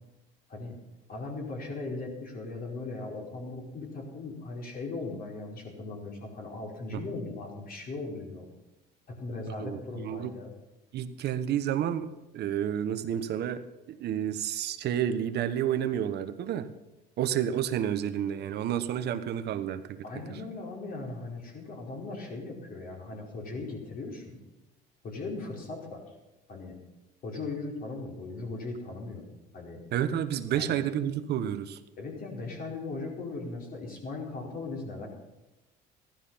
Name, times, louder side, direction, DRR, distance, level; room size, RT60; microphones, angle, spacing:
voice 1, 1.1-8.5 9.2-10.5 20.0-24.4 25.0-26.1 26.5-26.8 27.2-29.2 29.5-29.8 30.5-30.8 32.0-35.1, left 3 dB, 45° left, 0 dB, 4.7 m, -38 dB
voice 2, 9.6-10.3 10.9-16.7 17.2-20.0 20.3-20.4 29.9-31.8, right 10 dB, 55° right, 11 dB, 1.2 m, -30 dB
15.0 x 12.0 x 5.6 m, 1.0 s
supercardioid pair, 105°, 20 cm